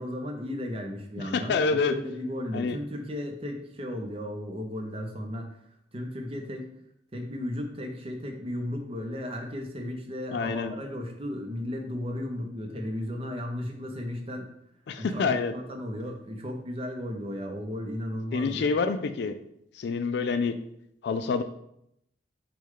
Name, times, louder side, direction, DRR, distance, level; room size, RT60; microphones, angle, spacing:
voice 1, 0.0-5.5 5.9-6.7 7.1-14.5 15.0-18.7, left 1 dB, 30° right, 3 dB, 0.6 m, -35 dB
voice 2, 1.3-2.0 2.5-2.8 10.3-10.7 14.9-15.5 18.3-19.3 19.7-20.6 21.0-21.4, left 4 dB, 60° left, 9 dB, 0.3 m, -27 dB
6.2 x 2.3 x 3.7 m, 0.75 s
head